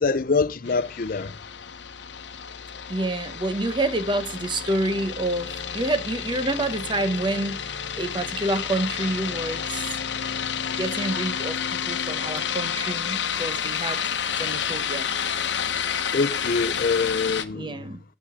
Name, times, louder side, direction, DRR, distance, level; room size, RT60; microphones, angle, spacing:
voice 1, 0.0-1.3 16.1-17.8, left 4 dB, 50° left, 0.6 m, -24 dB
sound 1, 0.6-17.4, left 7 dB, 80° left, 0.9 m, -30 dB
voice 2, 2.9-9.9 10.8-11.6 11.9-14.0 14.4-15.1 17.5-18.0, right 2 dB, 25° right, 0.9 m, -28 dB
8.9 x 8.6 x 4.9 m
head